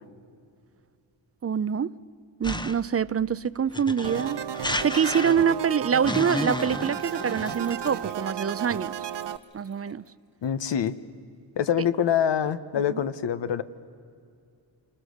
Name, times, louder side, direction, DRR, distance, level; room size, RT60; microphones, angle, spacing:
voice 1, 1.4-1.9 2.4-9.0 9.5-10.0 12.9-13.0, right 7 dB, 30° right, 0.6 m, -25 dB
sound 1, 2.4-2.9 3.7-5.6 6.1-7.9, left 1 dB, 10° left, 0.9 m, -32 dB
sound 2, 4.0-9.4, right 9 dB, 65° right, 0.8 m, -33 dB
sound 3, 6.9-10.1 10.4-10.5 10.8-10.9, left 2 dB, 85° left, 3.7 m, -49 dB
voice 2, 10.4-10.9 11.6-13.6, left 8 dB, 70° left, 1.1 m, -25 dB
28.0 x 25.5 x 6.5 m
cardioid pair, 70°, 45 cm